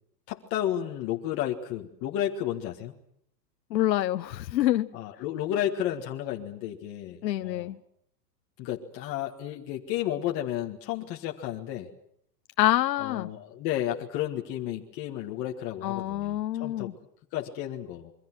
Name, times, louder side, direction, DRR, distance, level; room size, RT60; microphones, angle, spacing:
voice 1, 0.3-2.9 4.9-7.7 8.6-11.9 13.0-16.9 17.3-18.1, left 11 dB, 25° left, 1 dB, 1.7 m, -32 dB
voice 2, 3.7-4.9 7.2-7.8 12.6-13.3 15.8-16.9, left 14 dB, 80° left, 10 dB, 1.0 m, -26 dB
27.5 x 23.5 x 6.2 m, 0.70 s
supercardioid pair, 165°, 50 cm